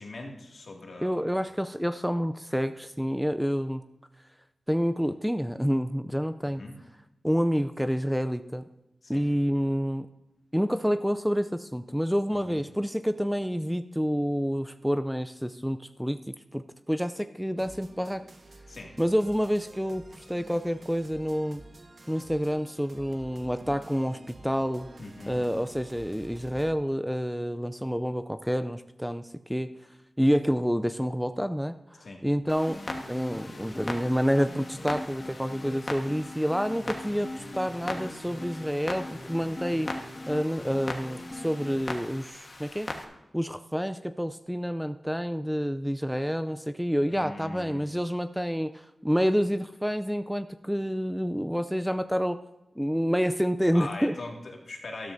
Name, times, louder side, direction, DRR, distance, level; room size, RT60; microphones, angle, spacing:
voice 1, 0.0-1.3 6.4-6.7 9.0-9.3 12.5-12.6 18.7-18.9 25.0-25.4 32.0-32.2 47.1-47.8 53.7-55.1, left 2 dB, 65° left, 0 dB, 2.1 m, -41 dB
voice 2, 1.0-3.8 4.7-6.6 7.2-8.6 9.1-10.1 10.5-16.2 16.5-18.2 19.0-21.6 22.1-24.9 25.3-29.7 30.2-32.8 33.1-39.9 40.3-42.9 43.3-52.4 52.8-54.1, equal, ahead, 10 dB, 0.4 m, -28 dB
sound 1, 17.5-26.7, right 2 dB, 55° right, 1.0 m, -50 dB
Clock, 32.5-43.0, left 2 dB, 45° left, 1.3 m, -40 dB
sound 2, 32.7-41.8, left 1 dB, 30° left, 2.0 m, -41 dB
13.0 x 12.5 x 2.6 m, 0.98 s
wide cardioid pair, 90°, 0 cm